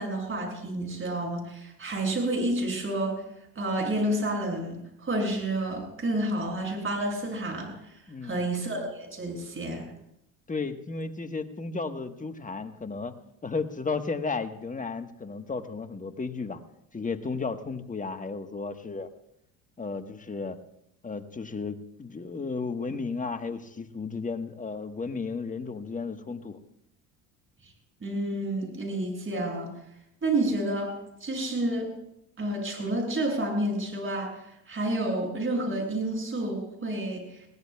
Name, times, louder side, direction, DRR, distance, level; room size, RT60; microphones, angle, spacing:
voice 1, 0.0-3.2 3.6-7.7 8.2-9.9 28.0-29.7 30.2-31.9 32.4-34.3 34.7-37.4, right 1 dB, 30° right, 0 dB, 6.8 m, -29 dB
voice 2, 8.1-8.5 10.5-13.1 13.4-16.6 16.9-19.1 19.8-20.6 21.0-26.6, left 4 dB, 20° left, 7 dB, 1.3 m, -34 dB
22.0 x 17.0 x 2.3 m, 0.79 s
hypercardioid pair, 75°, 41 cm